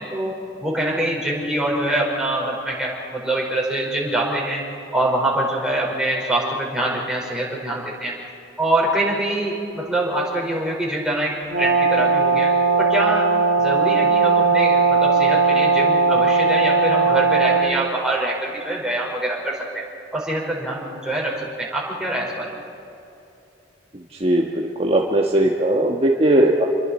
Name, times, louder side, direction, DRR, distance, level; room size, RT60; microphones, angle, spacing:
voice 1, 0.0-4.6 4.9-8.1 8.6-12.5 12.8-13.3 13.6-19.9 20.1-22.6, right 1 dB, 5° right, -4 dB, 5.0 m, -24 dB
Brass instrument, 11.5-17.8, right 4 dB, 70° right, 1.8 m, -18 dB
voice 2, 24.2-26.7, right 1 dB, 35° right, 0 dB, 1.3 m, -18 dB
28.0 x 22.0 x 4.4 m, 2.8 s
head